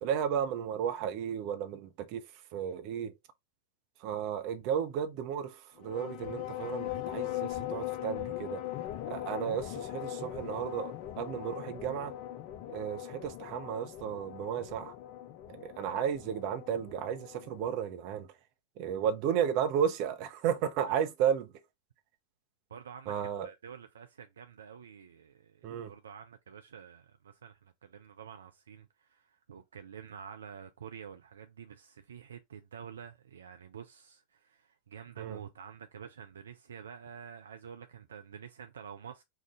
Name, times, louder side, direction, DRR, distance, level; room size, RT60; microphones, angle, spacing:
voice 1, 0.0-2.2 2.5-3.1 4.0-8.6 9.1-12.1 12.7-14.9 15.5-18.3 18.8-21.5 23.1-23.5 25.6-25.9 35.2-35.4, right 8 dB, 45° right, 0.8 m, -33 dB
sound 1, 5.8-17.7, left 13 dB, 45° left, 0.5 m, -40 dB
voice 2, 22.7-39.2, right 7 dB, 65° right, 0.4 m, -49 dB
5.0 x 2.5 x 3.7 m
figure-of-eight pair, 90°, 0 cm